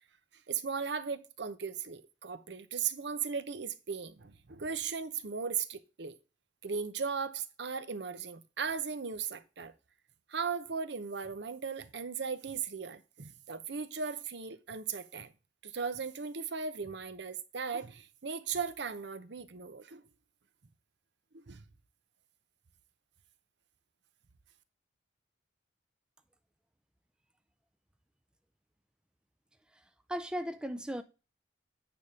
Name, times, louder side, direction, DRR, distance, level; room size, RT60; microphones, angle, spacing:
voice 1, 0.5-6.2 6.6-9.7 10.3-15.3 15.6-20.0 21.3-21.6, right 6 dB, 65° right, 0.8 m, -37 dB
voice 2, 30.1-31.0, equal, 5° right, 0.4 m, -36 dB
9.2 x 3.6 x 6.4 m
head